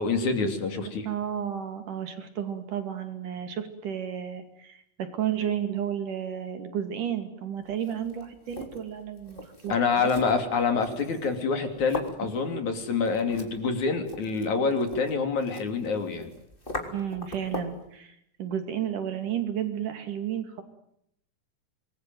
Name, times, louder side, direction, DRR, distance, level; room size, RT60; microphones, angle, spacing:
voice 1, 0.0-1.1 9.7-16.3, left 4 dB, 50° left, 7 dB, 4.0 m, -26 dB
voice 2, 0.8-10.1 16.9-20.6, right 9 dB, 55° right, 8 dB, 3.9 m, -32 dB
sound 1, 7.7-17.9, left 2 dB, 15° left, 3.3 m, -42 dB
27.0 x 21.5 x 9.3 m, 0.76 s
omnidirectional pair, 4.6 m